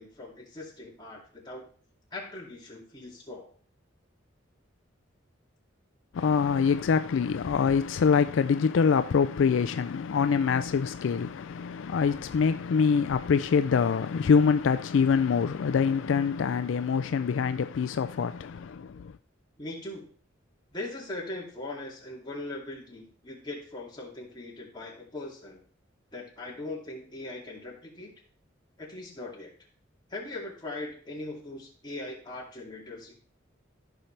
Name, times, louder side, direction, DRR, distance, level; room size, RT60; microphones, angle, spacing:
voice 1, 0.0-1.7 2.1-3.5 19.6-20.1 20.7-25.6 26.1-28.1 28.8-29.5 30.1-33.1, left 2 dB, 25° left, 2.6 m, -40 dB
voice 2, 6.1-19.1, left 6 dB, 75° left, 0.4 m, -25 dB
14.5 x 5.8 x 3.3 m
head